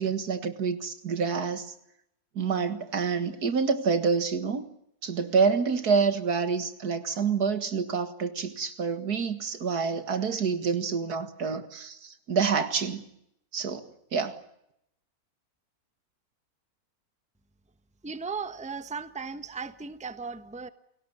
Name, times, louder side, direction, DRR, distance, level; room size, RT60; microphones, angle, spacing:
voice 1, 0.0-1.7 2.4-4.7 5.0-13.0 13.5-14.4, right 5 dB, 80° right, 10 dB, 2.3 m, -27 dB
voice 2, 18.0-20.7, right 5 dB, 5° right, 12 dB, 1.0 m, -36 dB
29.5 x 18.0 x 9.7 m, 0.80 s
omnidirectional pair, 1.6 m